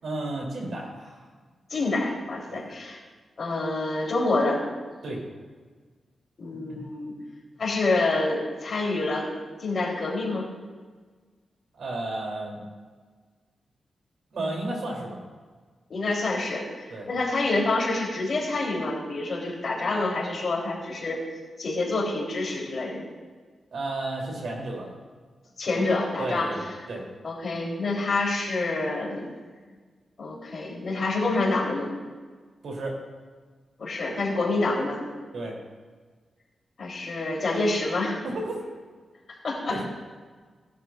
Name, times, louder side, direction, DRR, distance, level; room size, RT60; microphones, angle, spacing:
voice 1, 0.0-1.3 2.5-2.7 5.0-5.2 6.5-6.8 11.7-12.6 14.3-15.2 16.9-17.1 23.7-24.9 25.7-25.8 26.2-27.0 32.6-33.0 35.3-35.6 38.2-38.6 39.7-39.8, right 2 dB, 70° right, -1 dB, 3.2 m, -33 dB
voice 2, 1.7-3.0 3.4-4.6 6.4-7.1 7.6-9.3 9.6-10.5 15.9-21.2 21.6-23.0 25.6-26.5 27.2-29.3 30.2-31.9 33.8-35.0 36.8-38.2 39.4-39.8, left 2 dB, 50° left, -3 dB, 3.6 m, -27 dB
18.5 x 11.5 x 2.5 m, 1.5 s
wide cardioid pair, 135°, 0 cm